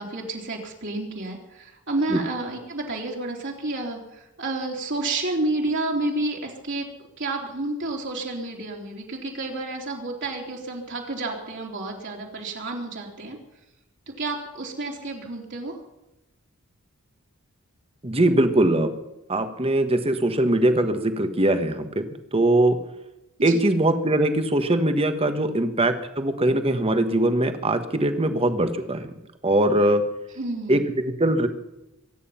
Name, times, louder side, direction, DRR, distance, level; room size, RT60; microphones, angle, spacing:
voice 1, 0.0-6.8 7.2-13.4 14.2-15.7 23.5-23.6 30.4-30.8, right 2 dB, 55° right, -1 dB, 3.4 m, -30 dB
voice 2, 18.0-18.9 19.3-22.0 22.3-22.8 23.4-29.1 29.4-30.0 30.7-30.8 31.2-31.5, right 1 dB, 25° right, 9 dB, 1.4 m, -21 dB
23.5 x 9.6 x 5.7 m, 0.94 s
head